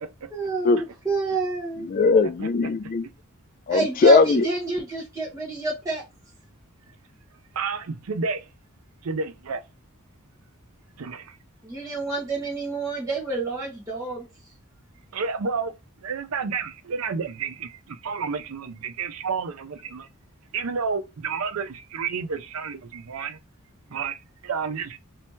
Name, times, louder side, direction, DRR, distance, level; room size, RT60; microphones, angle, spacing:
voice 1, 0.3-1.9 3.7-6.0 11.6-14.2, right 3 dB, 15° right, 1.4 m, -28 dB
voice 2, 1.9-3.1 3.7-4.5, left 3 dB, 40° left, 0.3 m, -19 dB
voice 3, 7.5-8.5 9.0-9.6 11.0-11.4 15.1-15.7 16.0-20.1 20.5-23.4 23.9-25.0, right 5 dB, 80° right, 0.5 m, -30 dB
3.2 x 2.9 x 3.0 m
head